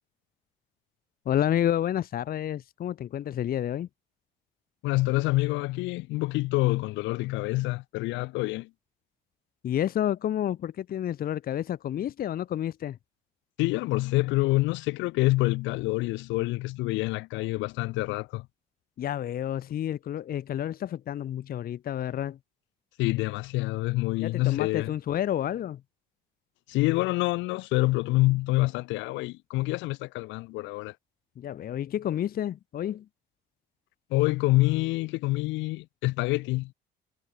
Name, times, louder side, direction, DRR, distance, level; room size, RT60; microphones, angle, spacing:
voice 1, 1.3-3.9 9.6-13.0 19.0-22.4 24.2-25.8 31.4-33.1, left 11 dB, 50° left, 0.8 m, -30 dB
voice 2, 4.8-8.7 13.6-18.5 23.0-24.9 26.7-30.9 34.1-36.7, left 20 dB, 85° left, 1.2 m, -27 dB
cardioid pair, 90°, 19 cm